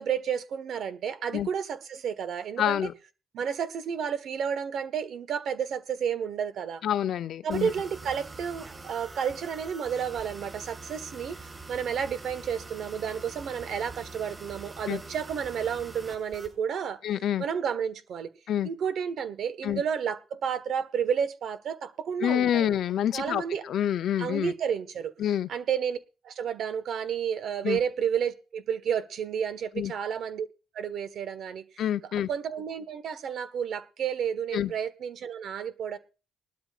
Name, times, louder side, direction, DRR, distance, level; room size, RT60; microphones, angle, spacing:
voice 1, 0.0-2.8 3.3-6.8 7.4-17.0 17.4-18.3 18.6-22.7 23.1-23.6 24.2-25.1 25.5-26.0 26.2-30.5 30.7-31.6 32.3-36.0, right 7 dB, 65° right, 1.4 m, -31 dB
voice 2, 2.6-2.9 6.8-7.7 14.9-15.0 17.0-17.4 18.5-18.7 19.6-19.8 22.2-24.5 25.2-25.5 27.6-27.8 29.7-29.9 31.8-32.3 34.5-34.7, left 10 dB, 70° left, 0.6 m, -27 dB
sound 1, 7.5-16.5, right 3 dB, 30° right, 7.0 m, -44 dB
20.5 x 12.5 x 2.5 m
cardioid pair, 90°, 0 cm